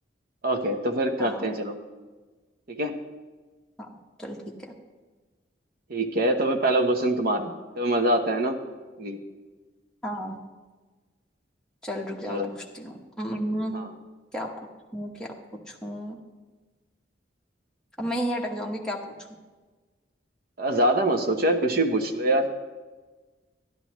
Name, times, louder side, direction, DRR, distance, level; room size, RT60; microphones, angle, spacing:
voice 1, 0.4-1.8 2.7-3.0 5.9-8.6 9.0-9.2 12.3-12.5 13.7-13.9 20.6-22.5, right 1 dB, 55° right, 5 dB, 1.0 m, -24 dB
voice 2, 10.0-10.4 11.8-13.8 14.3-14.7 14.9-15.3 15.7-16.2 18.0-19.1, equal, 5° left, -2 dB, 1.2 m, -32 dB
13.0 x 11.0 x 3.1 m, 1.3 s
head